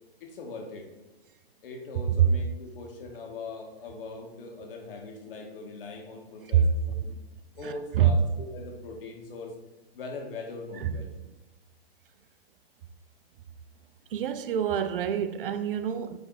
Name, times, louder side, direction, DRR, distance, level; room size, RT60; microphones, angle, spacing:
voice 1, 0.2-0.9 1.6-7.1 7.6-9.6 9.9-11.1, left 3 dB, 60° left, 1.8 m, -41 dB
voice 2, 7.6-8.2 10.8-10.9 14.1-16.2, right 8 dB, 60° right, 0.6 m, -27 dB
9.0 x 3.4 x 4.0 m
hypercardioid pair, 150°, 31 cm